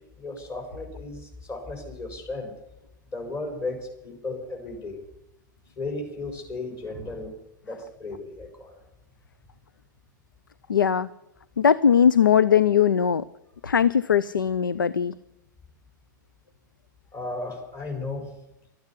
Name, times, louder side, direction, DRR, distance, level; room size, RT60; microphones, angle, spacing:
voice 1, 0.2-2.5 3.1-5.0 5.7-7.3 7.6-8.8 17.1-18.3, left 2 dB, 30° left, 3 dB, 5.2 m, -35 dB
voice 2, 10.7-11.1 11.6-13.2 13.6-15.1, left 8 dB, 90° left, 18 dB, 0.5 m, -20 dB
13.0 x 9.5 x 9.9 m, 0.87 s
hypercardioid pair, 105°, 11 cm